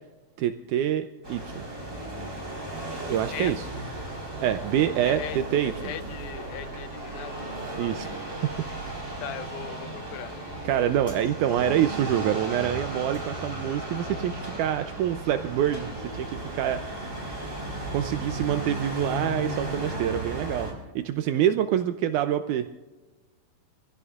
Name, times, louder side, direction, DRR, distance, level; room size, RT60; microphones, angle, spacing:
voice 1, 0.4-1.6 3.1-3.6 4.4-5.9 7.8-8.5 10.6-17.0 17.9-20.7 20.9-22.7, right 10 dB, 80° right, 8 dB, 1.8 m, -26 dB
sound 1, 1.2-20.7, right 1 dB, 20° right, 4.3 m, -35 dB
voice 2, 5.1-7.4 9.2-10.3, left 11 dB, 85° left, 11 dB, 2.6 m, -38 dB
27.0 x 16.0 x 2.4 m, 1.2 s
omnidirectional pair, 4.1 m